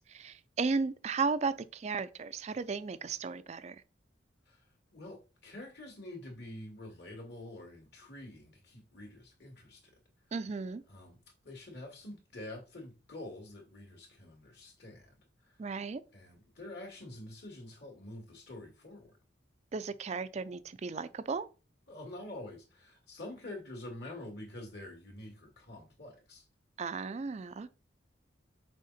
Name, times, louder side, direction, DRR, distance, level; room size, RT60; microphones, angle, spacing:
voice 1, 0.1-3.8 10.3-10.8 15.6-16.0 19.7-21.5 26.8-27.7, right 4 dB, 35° right, 0.4 m, -35 dB
voice 2, 4.5-9.8 10.9-15.1 15.4-15.6 16.1-19.1 21.9-26.4, left 1 dB, 60° left, 2.3 m, -47 dB
6.4 x 4.2 x 4.1 m
head